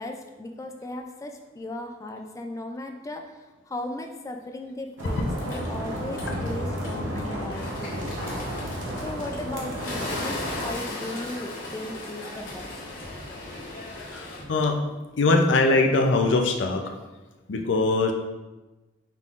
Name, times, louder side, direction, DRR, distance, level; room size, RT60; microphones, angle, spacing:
voice 1, 0.0-8.5 9.0-12.7, left 1 dB, 15° left, 4 dB, 0.3 m, -37 dB
Bird, 5.0-14.4, left 2 dB, 50° left, 1.3 m, -38 dB
sound 1, 5.0-10.7, equal, 90° right, 0.8 m, -32 dB
voice 2, 14.0-14.8 15.2-16.9 17.5-18.1, left 2 dB, 75° left, 4 dB, 0.5 m, -22 dB
5.6 x 3.7 x 2.4 m, 1.1 s
head